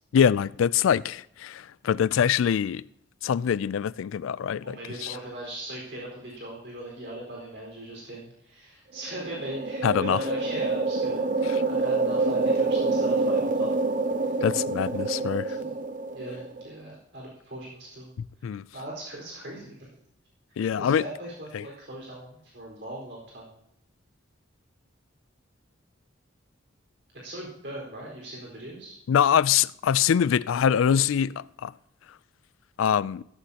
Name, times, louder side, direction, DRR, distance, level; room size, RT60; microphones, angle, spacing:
voice 1, 0.1-2.8 3.2-5.2 9.8-10.2 14.4-15.6 18.4-18.6 20.6-21.0 21.5-21.6 29.1-31.7 32.8-33.2, left 8 dB, 85° left, 0.3 m, -24 dB
voice 2, 4.6-13.7 14.2-14.3 15.2-15.3 15.5-15.7 16.1-18.1 18.4-19.9 20.7-23.5 27.2-28.9, right 1 dB, 60° right, 4.6 m, -39 dB
sound 1, 9.0-16.7, right 3 dB, 40° right, 0.7 m, -27 dB
14.5 x 14.0 x 2.9 m
head